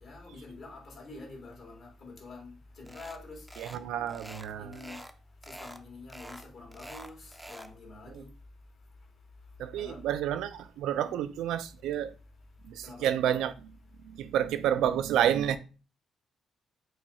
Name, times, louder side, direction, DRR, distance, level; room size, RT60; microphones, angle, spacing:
voice 1, 0.0-3.4 4.6-5.0 5.5-8.3 9.8-10.0 11.0-11.1 12.8-13.1, left 3 dB, 55° left, 1.8 m, -46 dB
sound 1, 2.9-3.2 3.5-5.1 5.4-5.8 6.1-7.7, right 1 dB, 5° right, 0.5 m, -46 dB
voice 2, 3.6-4.9 8.1-8.2 9.6-12.1 12.6-13.7 14.0-15.6, right 10 dB, 85° right, 0.3 m, -30 dB
4.6 x 2.4 x 4.1 m
cardioid pair, 90°, 0 cm